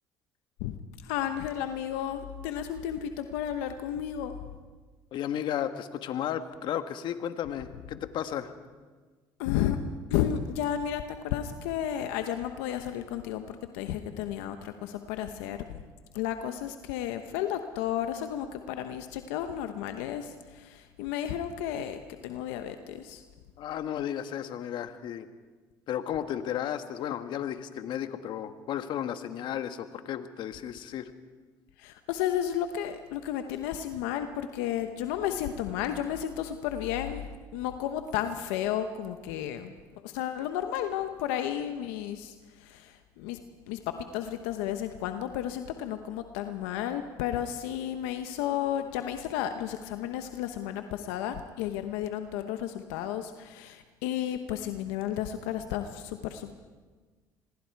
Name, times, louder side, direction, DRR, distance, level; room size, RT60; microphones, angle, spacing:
voice 1, 1.0-4.3 9.4-9.8 10.1-15.8 16.1-23.2 31.8-39.8 40.0-43.4 43.7-56.5, left 10 dB, 85° left, 8 dB, 1.0 m, -33 dB
voice 2, 5.1-8.5 23.6-25.3 25.9-31.1, left 10 dB, 65° left, 9 dB, 1.4 m, -34 dB
26.5 x 21.0 x 4.7 m, 1.4 s
supercardioid pair, 85°, 9 cm